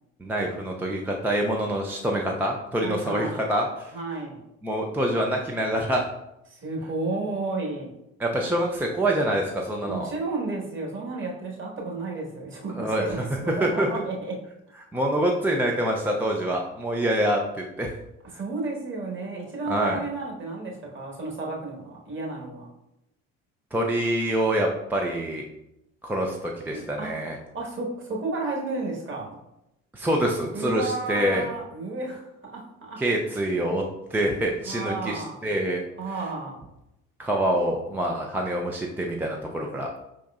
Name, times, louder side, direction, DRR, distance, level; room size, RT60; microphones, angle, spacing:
voice 1, 0.2-3.9 4.6-6.0 8.2-10.1 12.8-13.1 13.6-13.9 14.9-17.9 19.7-20.0 23.7-25.4 26.0-27.4 29.9-31.4 33.0-33.8 34.1-35.8 37.2-39.9, right 1 dB, 5° right, 0 dB, 0.3 m, -26 dB
voice 2, 2.8-3.4 3.9-4.4 6.5-7.9 9.8-14.3 18.3-22.7 26.7-27.1 27.5-29.4 30.5-33.0 34.6-35.4 36.0-36.6, right 3 dB, 30° right, -1 dB, 1.4 m, -32 dB
5.2 x 3.5 x 2.3 m, 0.87 s
figure-of-eight pair, 55°, 39 cm